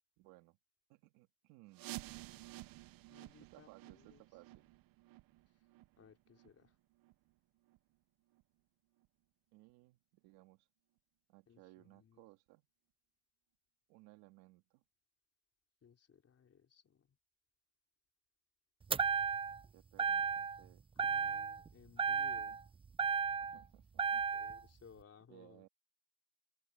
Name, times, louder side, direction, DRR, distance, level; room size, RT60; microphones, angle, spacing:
voice 1, 0.2-0.6 0.9-1.9 3.4-4.7 9.5-10.7 11.3-12.7 13.9-14.8 19.7-20.8 22.5-22.6 23.4-24.3 25.3-25.7, right 21 dB, 85° right, 3.0 m, -62 dB
sound 1, 1.7-7.3 7.7-7.8 8.3-8.4 9.0-9.1 9.7-9.8, right 18 dB, 65° right, 0.8 m, -52 dB
voice 2, 3.1-4.2 6.0-6.7 11.5-12.2 15.8-17.1 21.0-22.6 24.3-25.7, left 7 dB, 40° left, 3.6 m, -62 dB
sound 2, 18.9-19.7 20.0-20.7 21.0-21.7 22.0-23.6 24.0-24.6, right 6 dB, 15° right, 0.4 m, -34 dB
open air
supercardioid pair, 95°, 37 cm